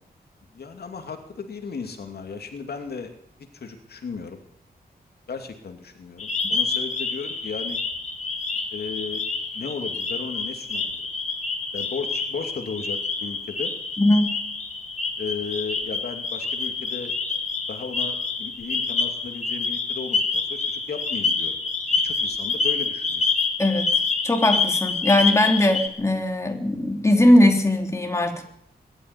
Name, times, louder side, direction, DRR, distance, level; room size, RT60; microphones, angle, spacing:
voice 1, 0.5-3.1 3.5-4.4 5.3-7.8 8.7-9.2 9.5-10.9 11.7-13.7 15.2-17.1 17.7-21.6 21.9-23.3, left 5 dB, 75° left, 5 dB, 2.7 m, -35 dB
sound 1, 6.2-25.9, left 4 dB, 45° left, 2.7 m, -27 dB
voice 2, 14.0-14.3 23.6-23.9 24.2-28.4, left 1 dB, 15° left, 3 dB, 3.2 m, -19 dB
21.0 x 12.5 x 9.8 m, 0.69 s
wide cardioid pair, 145°, 17 cm